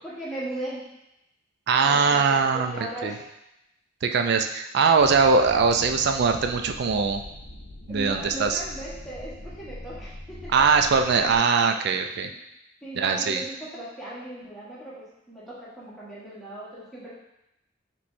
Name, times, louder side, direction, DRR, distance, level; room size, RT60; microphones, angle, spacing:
voice 1, 0.0-0.9 1.8-3.2 7.9-10.7 11.2-11.6 12.2-12.4 12.8-17.1, right 1 dB, ahead, -10 dB, 1.3 m, -38 dB
voice 2, 1.7-2.7 3.0-3.1 4.0-7.2 7.9-8.6 10.5-12.3 13.0-13.4, right 5 dB, 55° right, 6 dB, 0.4 m, -21 dB
sound 1, 5.0-11.4, left 1 dB, 65° left, 0.6 m, -42 dB
5.8 x 3.1 x 2.6 m, 0.86 s
head